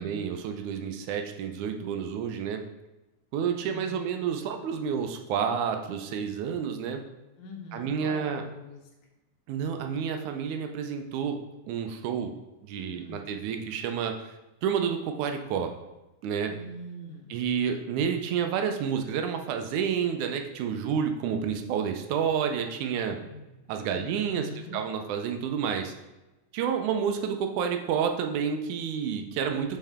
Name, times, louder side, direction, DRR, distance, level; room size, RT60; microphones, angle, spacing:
voice 1, 0.0-2.6 3.3-7.0 7.7-8.4 9.5-11.4 11.7-12.3 12.6-14.1 14.6-15.7 16.2-16.5 17.3-23.2 23.7-25.9 26.5-29.8, right 7 dB, 80° right, 5 dB, 2.1 m, -29 dB
voice 2, 3.6-4.1 7.4-8.9 12.9-13.3 16.4-17.4 23.2-23.6 23.9-24.8, left 2 dB, 75° left, 1 dB, 2.3 m, -43 dB
5.6 x 5.4 x 3.5 m, 1.0 s
omnidirectional pair, 3.5 m